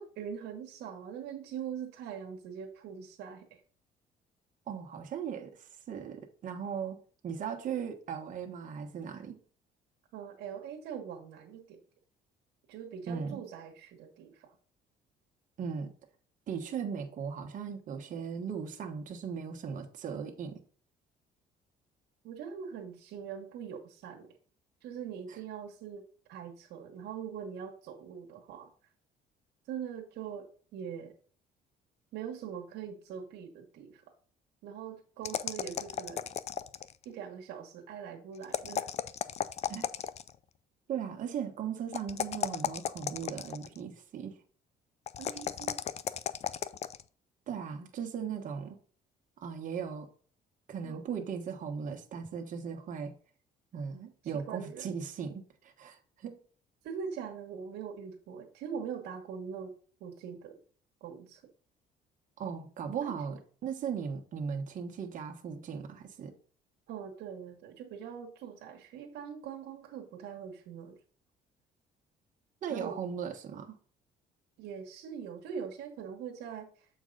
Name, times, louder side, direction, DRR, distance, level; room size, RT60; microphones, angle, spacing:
voice 1, 0.0-3.6 10.1-11.8 12.7-14.6 22.2-24.4 24.8-28.7 29.7-31.1 32.1-34.0 34.6-36.3 37.0-38.9 45.2-45.8 50.8-51.0 54.2-54.9 56.8-59.7 60.0-60.6 61.0-61.4 63.0-63.1 66.9-71.0 72.7-73.0 74.6-76.9, right 7 dB, 85° right, 1.3 m, -42 dB
voice 2, 4.7-7.0 7.2-9.4 13.1-13.4 15.6-15.9 16.5-20.6 25.3-25.4 39.7-39.9 40.9-44.3 47.5-48.8 49.4-50.1 50.7-53.1 53.7-55.3 55.6-56.4 62.4-66.3 72.6-73.8, right 7 dB, 50° right, 1.2 m, -38 dB
sound 1, 35.2-37.0 38.4-40.4 41.9-43.8 45.1-47.0, left 9 dB, 40° left, 0.4 m, -35 dB
7.6 x 4.7 x 3.8 m
cardioid pair, 110°, 17 cm